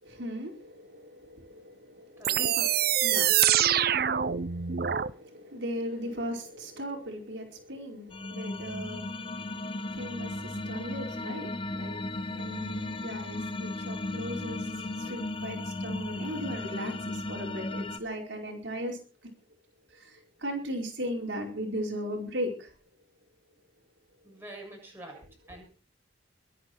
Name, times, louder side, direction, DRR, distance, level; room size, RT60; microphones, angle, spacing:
voice 1, 0.0-19.0 19.9-22.7, equal, 70° right, 5.0 m, -38 dB
sound 1, 2.2-5.1, right 10 dB, 50° right, 0.7 m, -25 dB
sound 2, 8.1-18.0, left 2 dB, 25° left, 0.9 m, -35 dB
voice 2, 24.2-25.7, right 1 dB, 10° right, 7.3 m, -45 dB
23.5 x 10.0 x 4.6 m
head